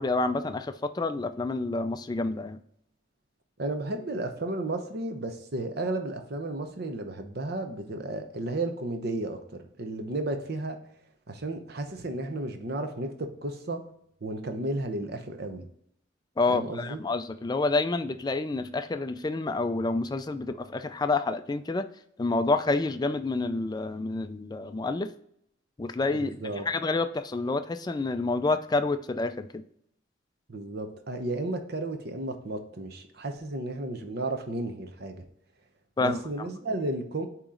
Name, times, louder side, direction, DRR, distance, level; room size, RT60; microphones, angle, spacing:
voice 1, 0.0-2.6 16.4-21.9 22.2-25.1 25.8-26.4 26.7-29.6 36.0-36.2, left 3 dB, 20° left, 10 dB, 0.3 m, -28 dB
voice 2, 3.6-9.4 9.8-10.8 11.3-13.8 14.2-15.7 16.5-17.0 26.1-26.6 30.5-35.2 36.0-37.3, right 2 dB, 55° right, 6 dB, 0.8 m, -33 dB
8.5 x 3.0 x 3.8 m, 0.71 s
head